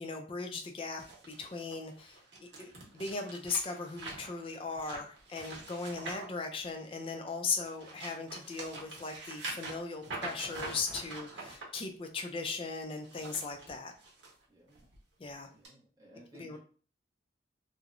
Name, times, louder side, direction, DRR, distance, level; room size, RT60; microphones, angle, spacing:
voice 1, 0.0-13.9 15.2-15.5 16.3-16.6, left 4 dB, 30° left, 4 dB, 0.3 m, -38 dB
sound 1, 1.0-7.1 7.6-11.6 12.9-14.3 14.7-15.0 15.6-15.7, right 3 dB, 80° right, 0.9 m, -45 dB
voice 2, 14.5-14.9 15.5-16.6, equal, 20° right, -4 dB, 0.5 m, -58 dB
2.8 x 2.0 x 2.4 m, 0.41 s
head